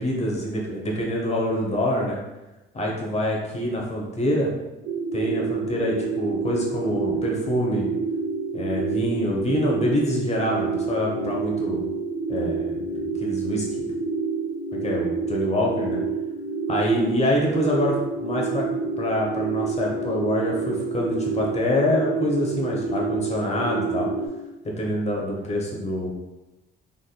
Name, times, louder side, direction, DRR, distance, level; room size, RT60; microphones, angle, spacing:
voice 1, 0.0-2.2 2.7-4.5 5.1-7.9 8.5-11.8 12.3-13.9 14.8-16.0 16.7-18.7 19.0-24.1 24.8-26.1, left 1 dB, 35° left, -2 dB, 1.0 m, -25 dB
sound 1, 4.9-24.3, right 4 dB, 90° right, 0.5 m, -28 dB
3.9 x 3.5 x 2.3 m, 1.0 s
cardioid pair, 90°, 20 cm